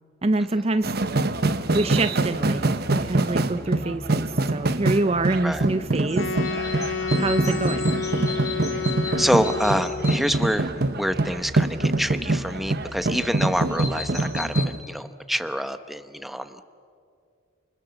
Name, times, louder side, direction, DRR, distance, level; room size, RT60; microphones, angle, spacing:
voice 1, 0.2-0.9 1.7-6.3 7.2-7.9, right 2 dB, 30° right, 11 dB, 0.6 m, -25 dB
sound 1, 0.8-14.8, right 2 dB, 55° right, 1.1 m, -25 dB
sound 2, 5.8-14.6, left 3 dB, 15° left, 3.7 m, -39 dB
Wind instrument woodwind instrument, 6.1-10.2, left 5 dB, 70° left, 2.0 m, -30 dB
voice 2, 9.2-10.7 11.0-16.7, equal, ahead, 9 dB, 0.9 m, -26 dB
29.0 x 29.0 x 7.0 m, 2.3 s
head